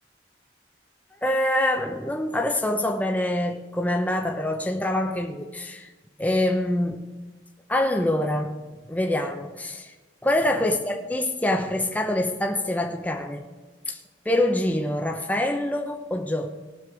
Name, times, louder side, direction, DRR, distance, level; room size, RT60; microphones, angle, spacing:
voice 1, 1.2-5.9 6.2-7.1 7.7-8.5 8.9-9.9 10.2-13.4 13.9-14.0 14.2-16.5, left 1 dB, 10° left, 3 dB, 0.8 m, -25 dB
18.5 x 6.8 x 4.8 m, 1.3 s
head